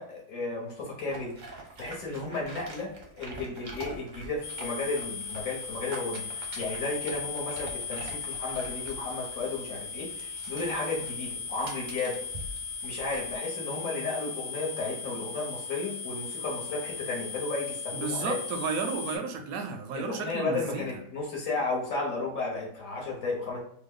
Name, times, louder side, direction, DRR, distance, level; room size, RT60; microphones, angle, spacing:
voice 1, 0.0-2.9 3.2-12.2 12.8-18.4 19.9-23.6, left 3 dB, 55° left, -2 dB, 1.4 m, -33 dB
sound 1, 1.1-13.4, right 2 dB, 45° right, 0.7 m, -46 dB
sound 2, 4.4-19.2, left 5 dB, 90° left, 1.3 m, -37 dB
voice 2, 17.9-20.8, right 5 dB, 70° right, 5 dB, 0.9 m, -33 dB
3.1 x 2.2 x 3.6 m, 0.67 s
omnidirectional pair, 1.7 m